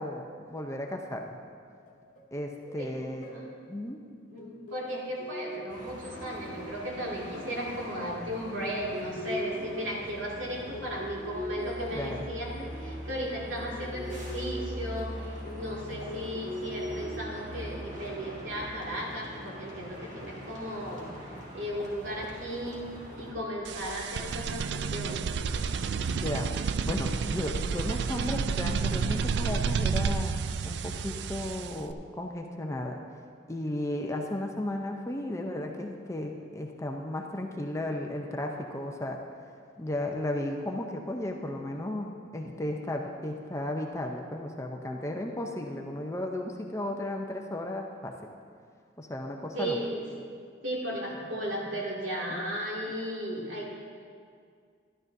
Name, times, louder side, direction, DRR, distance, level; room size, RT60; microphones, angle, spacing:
voice 1, 0.0-1.4 2.3-3.2 3.7-4.0 11.9-12.3 26.1-26.5 26.9-30.4 30.6-33.0 33.5-39.2 39.8-48.1 49.0-49.8 52.3-52.4, left 1 dB, 15° left, 2 dB, 0.5 m, -34 dB
sound 1, 1.9-2.3 2.7-2.9 3.2-3.5 4.4-7.8 8.5-9.9 10.7-14.7 15.5-18.1, equal, 40° left, 1.0 m, -41 dB
voice 2, 2.8-3.5 4.3-25.2 49.5-50.1 50.6-53.7, equal, 80° right, -4 dB, 2.2 m, -35 dB
sound 2, 5.7-23.3, equal, 40° right, 1.7 m, -42 dB
sound 3, 23.6-31.9, right 5 dB, 60° right, 0.3 m, -30 dB
12.5 x 12.5 x 2.6 m, 2.2 s
head